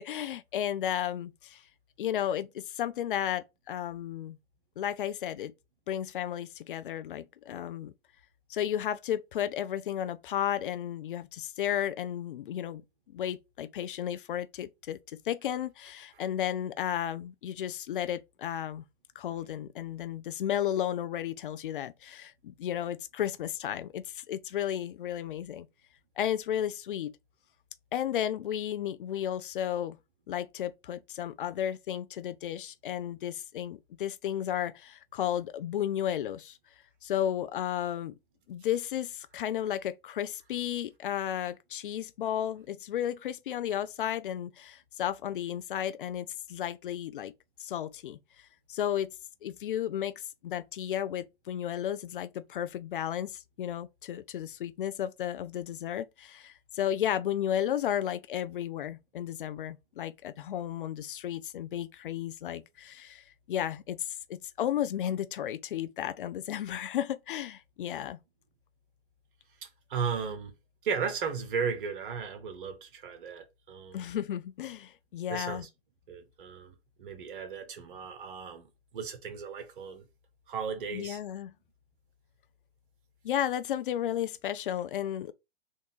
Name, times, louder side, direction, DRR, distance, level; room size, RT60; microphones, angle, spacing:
voice 1, 0.0-1.6 2.0-4.4 4.8-5.5 5.9-7.9 8.5-12.8 13.1-15.0 15.3-18.8 19.2-25.7 26.2-27.1 27.9-30.0 30.3-36.6 37.0-38.2 38.5-47.3 47.6-48.2 48.7-49.1 49.4-50.1 50.4-68.2 73.9-75.7 80.9-81.5 83.2-85.3, left 10 dB, 55° left, 0.5 m, -33 dB
voice 2, 69.6-70.5 70.8-74.1 75.3-75.7 76.1-80.1 80.5-81.2, right 6 dB, 55° right, 1.2 m, -36 dB
3.6 x 2.6 x 3.8 m
figure-of-eight pair, 110°, 32 cm